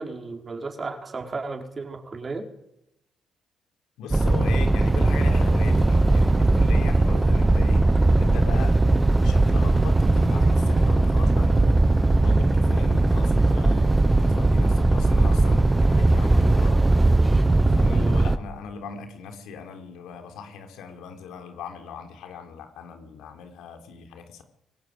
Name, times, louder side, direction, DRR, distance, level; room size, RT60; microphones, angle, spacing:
voice 1, 0.0-2.4 17.9-18.2, right 3 dB, 35° right, 3 dB, 4.6 m, -34 dB
voice 2, 4.0-7.9 8.2-8.8 9.2-11.9 12.2-14.1 14.4-16.9 17.7-24.4, left 5 dB, 90° left, 6 dB, 3.9 m, -38 dB
sound 1, 4.1-18.4, right 2 dB, 15° right, 1.3 m, -19 dB
24.0 x 17.0 x 9.5 m, 0.84 s
cardioid pair, 90°, 0 cm